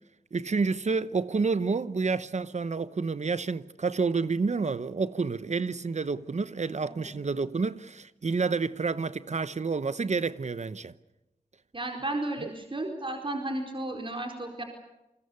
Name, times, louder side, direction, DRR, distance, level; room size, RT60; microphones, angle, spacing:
voice 1, 0.3-10.9 12.4-12.5, right 4 dB, 55° right, 0.9 m, -29 dB
voice 2, 11.7-14.6, right 1 dB, 40° right, 4.3 m, -33 dB
29.0 x 22.0 x 6.9 m
cardioid pair, 50°, 14 cm